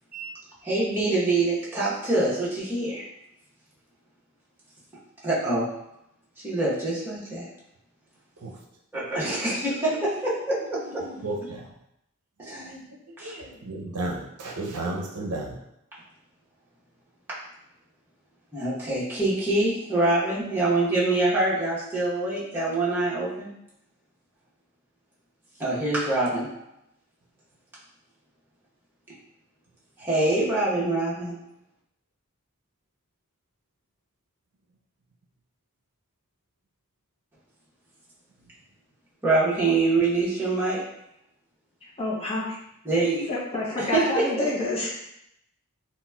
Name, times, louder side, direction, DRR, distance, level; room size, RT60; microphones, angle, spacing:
voice 1, 0.6-3.0 5.2-5.7 6.4-7.5 8.9-11.0 12.4-12.7 13.2-13.4 18.5-23.5 25.6-26.5 30.0-31.4 39.2-40.8 42.8-43.3 43.8-44.5, right 2 dB, 10° right, -9 dB, 0.9 m, -25 dB
voice 2, 10.8-11.6 12.5-12.8 13.2-15.5, right 2 dB, 85° right, -1 dB, 0.5 m, -33 dB
voice 3, 41.8-42.6 43.3-44.9, left 2 dB, 25° left, -5 dB, 0.6 m, -28 dB
3.9 x 2.1 x 2.2 m, 0.79 s
head